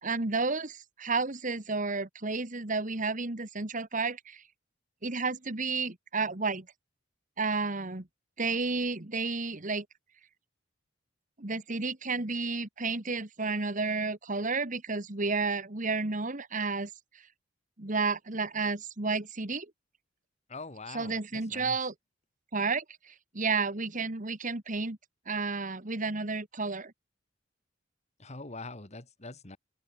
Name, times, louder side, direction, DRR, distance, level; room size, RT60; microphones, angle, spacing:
voice 1, 0.0-4.4 5.0-6.7 7.4-8.1 8.4-9.8 11.4-16.9 17.8-19.7 20.9-21.9 22.5-25.0 25.2-26.9, right 4 dB, 40° right, 1.9 m, -31 dB
voice 2, 20.5-21.8 28.2-29.6, left 3 dB, 35° left, 2.5 m, -43 dB
open air
head